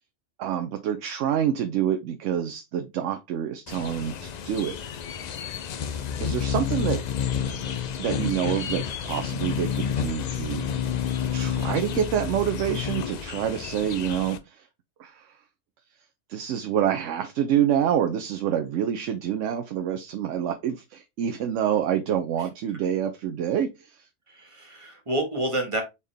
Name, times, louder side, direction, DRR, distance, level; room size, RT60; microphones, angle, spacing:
voice 1, 0.4-4.8 6.2-7.0 8.0-10.6 11.3-14.7 15.0-15.3 16.3-24.0, right 9 dB, 90° right, 0.9 m, -27 dB
sound 1, 3.7-14.4, left 8 dB, 60° left, 0.4 m, -30 dB
voice 2, 24.3-25.8, right 1 dB, 25° right, 1.4 m, -29 dB
4.1 x 3.6 x 3.3 m
omnidirectional pair, 1.2 m